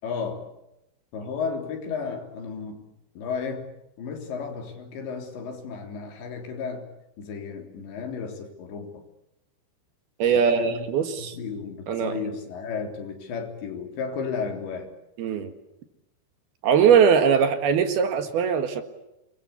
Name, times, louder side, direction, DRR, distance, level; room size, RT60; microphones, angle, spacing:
voice 1, 0.0-0.5 1.1-2.8 3.2-3.7 4.0-6.9 7.2-9.0 10.3-10.9 11.2-14.9, left 5 dB, 75° left, 5 dB, 5.8 m, -33 dB
voice 2, 10.2-11.4 11.9-12.2 15.2-15.5 16.6-18.8, right 7 dB, 65° right, 9 dB, 3.3 m, -21 dB
28.5 x 22.0 x 8.4 m, 0.88 s
omnidirectional pair, 5.2 m